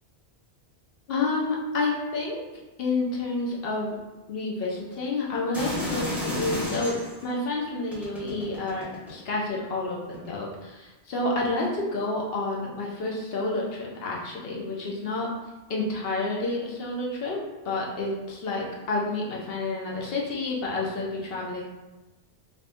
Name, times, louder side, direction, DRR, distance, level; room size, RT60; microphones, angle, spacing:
voice 1, 1.1-2.4 2.8-4.0 4.3-15.3 15.7-17.4 17.6-21.6, left 2 dB, 60° left, -2 dB, 0.8 m, -29 dB
sound 1, 5.5-7.2 7.9-9.3 10.1-10.3, left 1 dB, ahead, 0.7 m, -32 dB
2.8 x 2.5 x 3.4 m, 1.1 s
omnidirectional pair, 1.1 m